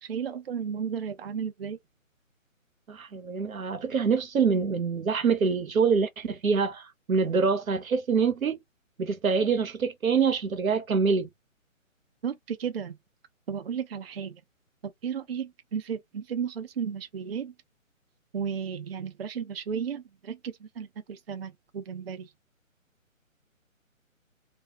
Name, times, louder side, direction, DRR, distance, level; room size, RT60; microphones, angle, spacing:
voice 1, 0.1-1.8 12.2-13.0 13.5-14.4 15.0-17.5 18.3-22.3, right 7 dB, 45° right, 0.5 m, -34 dB
voice 2, 2.9-8.6 9.0-11.3, right 5 dB, 80° right, 0.8 m, -25 dB
2.3 x 2.3 x 2.8 m
figure-of-eight pair, 150°, 41 cm